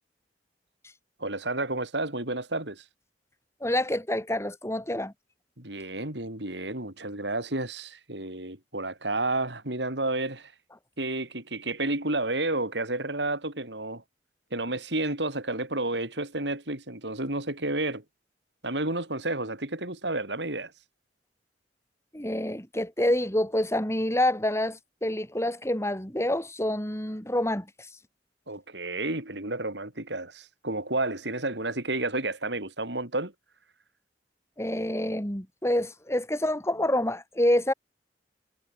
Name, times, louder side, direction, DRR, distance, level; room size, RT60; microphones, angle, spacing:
voice 1, 1.2-2.8 5.6-10.5 11.0-14.0 14.5-18.0 18.6-20.7 28.5-33.3, right 2 dB, 80° right, 7.0 m, -31 dB
voice 2, 3.6-5.1 22.1-27.7 34.6-37.7, left 1 dB, 15° left, 6.8 m, -27 dB
head